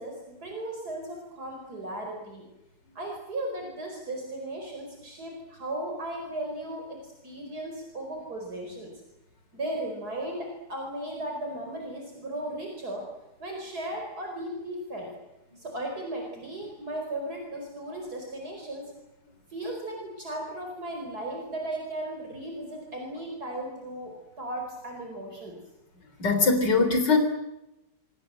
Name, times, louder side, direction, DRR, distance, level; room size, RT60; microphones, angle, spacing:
voice 1, 0.0-2.5 3.0-8.9 9.5-13.1 13.4-15.1 15.6-18.8 19.5-24.1 24.4-25.5, right 1 dB, 60° right, 1 dB, 5.3 m, -36 dB
voice 2, 26.2-27.2, left 4 dB, 90° left, 6 dB, 4.4 m, -21 dB
26.5 x 24.5 x 7.7 m, 0.93 s
omnidirectional pair, 1.8 m